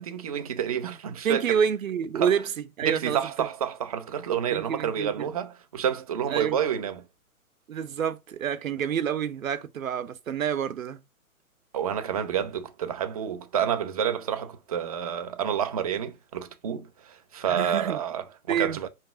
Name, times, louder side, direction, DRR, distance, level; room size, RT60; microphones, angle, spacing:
voice 1, 0.0-1.6 2.1-2.3 2.8-7.0 11.7-18.9, right 8 dB, 25° right, 0.5 m, -29 dB
voice 2, 1.2-3.5 4.5-5.3 6.3-6.6 7.7-11.0 17.5-18.0 18.5-18.8, right 8 dB, 65° right, 0.8 m, -28 dB
5.2 x 3.2 x 5.6 m
figure-of-eight pair, 125°, 43 cm